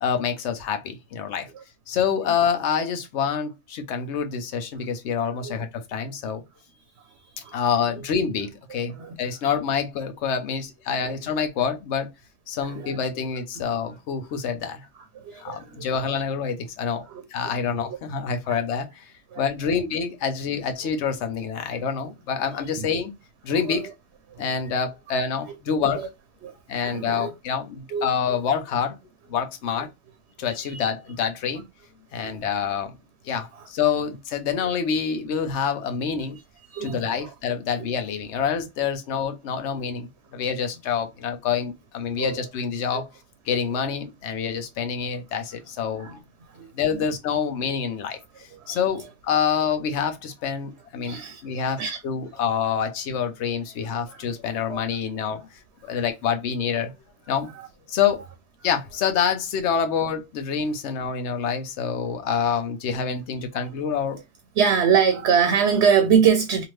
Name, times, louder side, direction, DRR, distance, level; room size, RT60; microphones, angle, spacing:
voice 1, 0.0-1.5 1.9-6.4 7.5-12.1 12.5-14.8 15.4-17.0 17.3-19.1 19.4-23.1 23.4-23.9 24.4-26.1 26.7-29.0 29.3-29.9 30.4-31.6 32.1-33.0 33.2-36.4 36.8-43.1 43.5-46.2 46.7-55.5 55.8-56.9 57.3-57.5 57.9-58.2 58.6-64.2, left 7 dB, 75° left, 1.0 m, -27 dB
voice 2, 12.6-13.0 15.1-15.9 17.1-17.5 17.9-18.0 18.5-18.6 19.3-19.4 22.0-22.1 22.8-22.9 23.7-23.8 24.3-24.4 25.8-26.1 26.4-26.5 26.8-27.3 27.9-28.1 30.7-30.9 32.2-32.3 33.6-33.7 36.7-37.3 40.5-40.6 42.2-42.4 42.9-43.0 46.0-46.2 46.5-47.0 48.5-48.8 51.0-52.0 54.1-54.2 54.7-54.8 57.5-57.7 63.6-63.7 64.6-66.6, right 7 dB, 70° right, 0.8 m, -24 dB
2.8 x 2.5 x 3.1 m
omnidirectional pair, 1.2 m